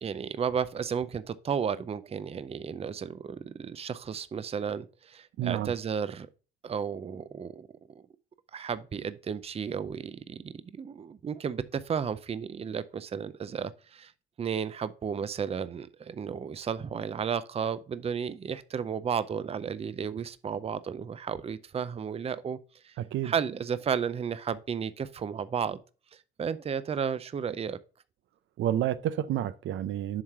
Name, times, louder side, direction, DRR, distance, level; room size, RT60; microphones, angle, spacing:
voice 1, 0.0-6.3 6.6-7.7 8.5-14.1 14.4-22.6 22.8-23.0 23.2-25.8 26.1-27.8, right 7 dB, 30° right, 0.5 m, -33 dB
voice 2, 5.4-5.7 23.0-23.3 28.6-30.2, right 11 dB, 75° right, 0.5 m, -29 dB
7.4 x 3.2 x 5.5 m
cardioid pair, 90°, 20 cm